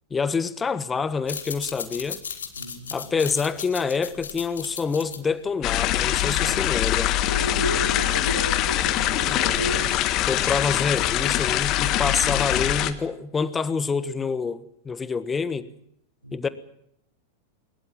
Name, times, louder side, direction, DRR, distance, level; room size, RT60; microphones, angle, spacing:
voice 1, 0.1-2.2 2.9-7.2 9.2-9.7 10.3-15.7 16.3-16.5, left 5 dB, 15° left, 1.4 m, -27 dB
sound 1, 1.1-6.3, left 7 dB, 70° left, 2.7 m, -37 dB
voice 2, 2.6-3.2 7.2-10.1 16.2-16.4, equal, 90° right, 4.5 m, -33 dB
sound 2, 5.6-12.9, left 13 dB, 35° left, 1.6 m, -23 dB
22.5 x 21.0 x 7.6 m
figure-of-eight pair, 90°, 0 cm